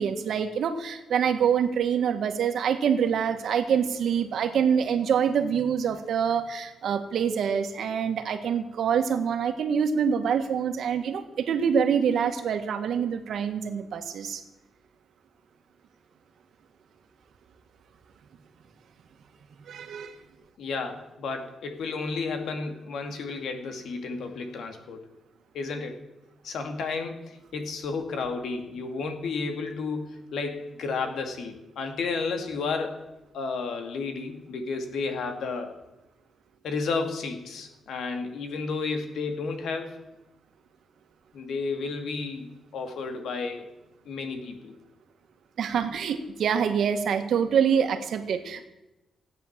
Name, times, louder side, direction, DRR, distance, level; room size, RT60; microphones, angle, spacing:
voice 1, 0.0-14.4 19.7-20.2 45.6-48.7, right 7 dB, 70° right, 7 dB, 1.6 m, -25 dB
voice 2, 20.6-25.0 25.5-26.0 26.4-33.0 33.3-35.7 36.6-40.0 41.3-42.5 42.7-43.7 44.0-44.7, left 4 dB, 80° left, 6 dB, 2.4 m, -32 dB
16.5 x 9.3 x 7.4 m, 0.96 s
cardioid pair, 120°, 0 cm